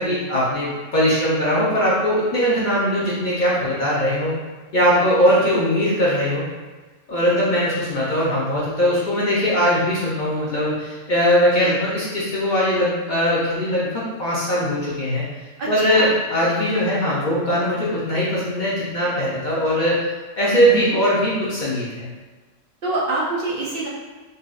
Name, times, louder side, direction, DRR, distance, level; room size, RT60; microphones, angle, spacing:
voice 1, 0.0-4.3 4.7-6.4 7.1-15.2 15.7-20.0 20.4-22.1, equal, 50° left, -7 dB, 0.7 m, -20 dB
voice 2, 4.9-5.3 7.2-7.5 11.6-11.8 15.6-16.1 20.7-21.0 22.8-23.9, right 2 dB, 60° right, -5 dB, 0.7 m, -27 dB
4.0 x 2.3 x 2.4 m, 1.3 s
omnidirectional pair, 1.3 m